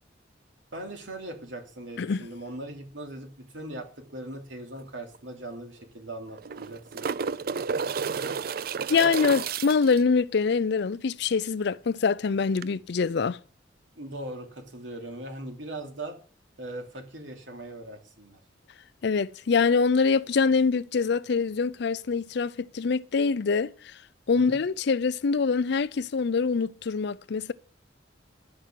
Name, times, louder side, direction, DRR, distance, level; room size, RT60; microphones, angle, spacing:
voice 1, 0.7-7.1 7.4-7.7 14.0-16.2 16.6-18.4 24.3-24.6, right 1 dB, 85° right, 3.0 m, -40 dB
sound 1, 4.8-4.9 5.1-5.2 6.3-10.0 12.6-12.7, right 6 dB, 50° right, 0.4 m, -31 dB
voice 2, 8.9-13.4 19.0-23.7 24.3-27.5, left 5 dB, 65° left, 0.5 m, -24 dB
11.0 x 6.0 x 7.4 m
head